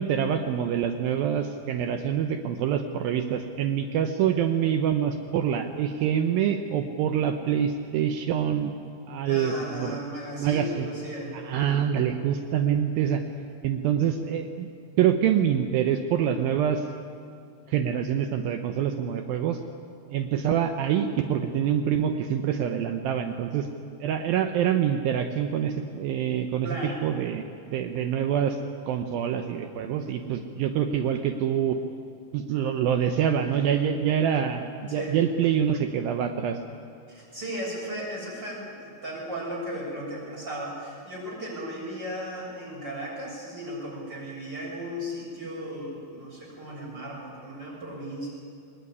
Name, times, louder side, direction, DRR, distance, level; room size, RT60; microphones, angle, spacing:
voice 1, 0.0-8.7 9.1-10.0 10.4-10.9 11.3-13.2 13.6-14.7 15.0-16.9 17.7-19.6 20.1-23.7 24.0-26.8 27.0-28.6 28.9-31.8 32.3-36.6, right 9 dB, 85° right, 6 dB, 2.0 m, -26 dB
voice 2, 9.2-11.3 26.6-27.0 34.9-35.2 37.1-48.3, equal, 20° right, -4 dB, 7.7 m, -36 dB
21.0 x 20.5 x 9.8 m, 2.5 s
omnidirectional pair, 5.4 m